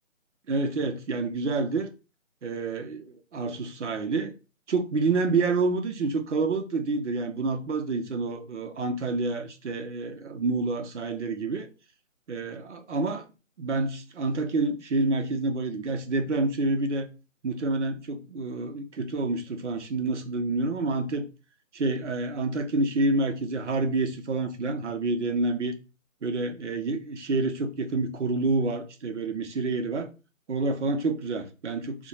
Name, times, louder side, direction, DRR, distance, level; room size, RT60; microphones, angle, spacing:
voice 1, 0.5-1.9 2.4-4.3 4.7-11.7 12.3-13.3 13.6-17.1 17.4-21.2 21.7-25.7 26.2-30.1 30.5-32.1, right 3 dB, 60° right, 0.6 m, -28 dB
2.3 x 2.1 x 2.9 m
figure-of-eight pair, 170°, 40 cm